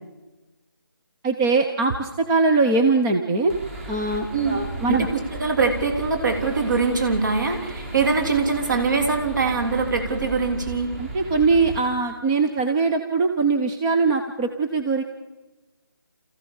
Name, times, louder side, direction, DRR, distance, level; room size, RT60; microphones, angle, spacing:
voice 1, 1.2-3.5 3.9-5.1 11.0-15.0, right 3 dB, 10° right, 4 dB, 0.6 m, -21 dB
sound 1, 3.5-11.8, right 3 dB, 35° right, 3.1 m, -35 dB
voice 2, 4.9-10.9, right 4 dB, 50° right, 4 dB, 3.4 m, -23 dB
27.5 x 15.0 x 7.1 m, 1.1 s
figure-of-eight pair, 160°, 13 cm